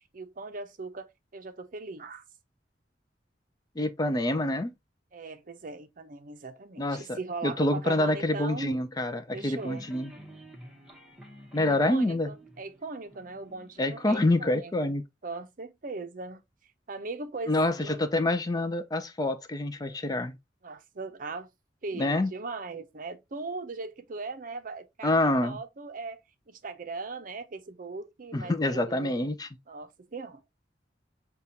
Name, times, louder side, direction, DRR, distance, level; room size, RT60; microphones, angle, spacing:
voice 1, 0.0-2.2 5.1-8.8 9.3-9.9 11.9-15.0 15.2-16.4 16.9-18.0 20.6-21.5 21.8-26.2 26.5-29.3 29.7-30.4, right 3 dB, 50° right, 0.6 m, -39 dB
voice 2, 3.8-4.7 6.8-10.1 11.5-12.3 13.8-15.0 17.5-20.4 21.9-22.3 25.0-25.6 28.3-29.5, left 1 dB, 20° left, 0.4 m, -27 dB
sound 1, 9.3-14.3, equal, 5° right, 0.9 m, -50 dB
6.6 x 2.3 x 2.7 m
head